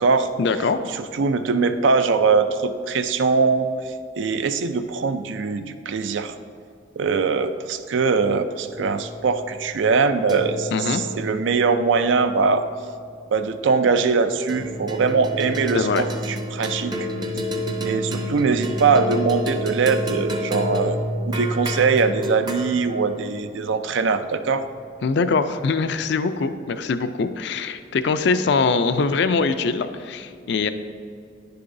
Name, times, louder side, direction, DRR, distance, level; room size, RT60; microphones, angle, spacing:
voice 1, 0.4-0.8 10.7-11.0 15.7-16.0 25.0-30.7, left 4 dB, 60° left, 10 dB, 0.4 m, -22 dB
voice 2, 0.9-6.3 7.0-12.6 13.3-16.9 17.8-21.0 21.2-24.6, right 4 dB, 70° right, 10 dB, 0.4 m, -22 dB
sound 1, 8.6-13.3 14.5-25.0, equal, 20° right, 0.6 m, -30 dB
10.0 x 6.8 x 2.6 m, 2.4 s
head